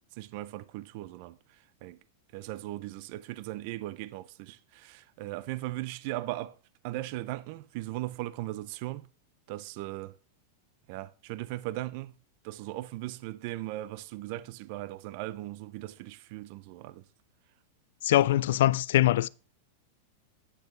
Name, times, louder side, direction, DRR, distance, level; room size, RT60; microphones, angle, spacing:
voice 1, 0.1-2.0 2.3-6.6 6.8-9.1 9.5-10.1 10.9-12.1 12.4-17.0, right 16 dB, 40° right, 0.4 m, -38 dB
voice 2, 18.0-19.3, left 14 dB, 65° left, 0.3 m, -23 dB
9.1 x 7.9 x 3.1 m
supercardioid pair, 175°, 0 cm